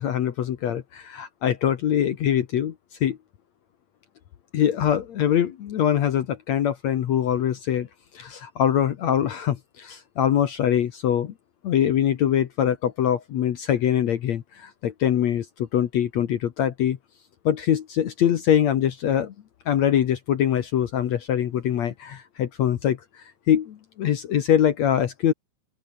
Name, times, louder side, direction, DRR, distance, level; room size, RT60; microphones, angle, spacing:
voice 1, 0.0-2.7 3.0-3.2 4.5-7.9 8.1-11.3 11.6-15.5 15.7-17.0 17.5-19.3 19.7-23.0 23.5-25.3, left 10 dB, 65° left, 1.9 m, -23 dB
open air
omnidirectional pair, 4.5 m